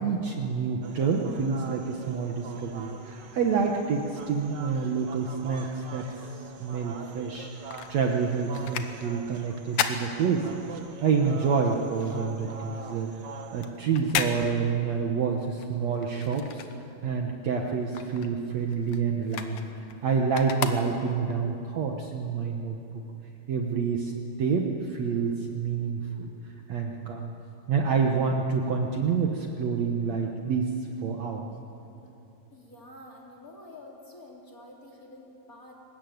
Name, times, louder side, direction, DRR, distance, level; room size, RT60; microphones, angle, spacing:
voice 1, 0.0-7.5 7.9-10.5 11.0-13.1 13.5-16.7 17.0-19.6 20.0-22.8 23.5-24.1 24.4-26.3 26.7-27.3 27.7-31.5, right 5 dB, 60° right, 2 dB, 2.1 m, -28 dB
sound 1, 0.8-13.7, right 5 dB, 90° right, 0.9 m, -44 dB
sound 2, 7.3-11.0 11.3-17.3 17.6-21.4 21.9-22.0, left 8 dB, 60° left, 1.9 m, -35 dB
voice 2, 32.5-35.7, left 1 dB, 25° left, 0 dB, 3.0 m, -48 dB
23.0 x 20.0 x 9.4 m, 2.9 s
omnidirectional pair, 4.2 m